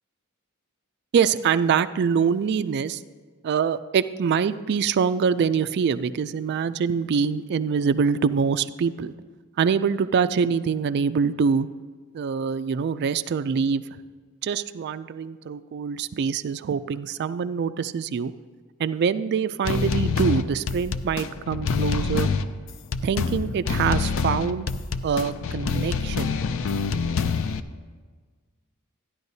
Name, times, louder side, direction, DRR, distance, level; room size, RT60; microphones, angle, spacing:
voice 1, 1.1-3.0 3.4-9.1 9.6-11.7 12.1-14.0 14.4-18.3 18.8-22.3 23.0-24.7 25.0-26.4, right 6 dB, 50° right, 12 dB, 0.3 m, -24 dB
sound 1, 19.6-27.6, left 5 dB, 65° left, 0.4 m, -26 dB
13.5 x 10.5 x 2.7 m, 1.5 s
head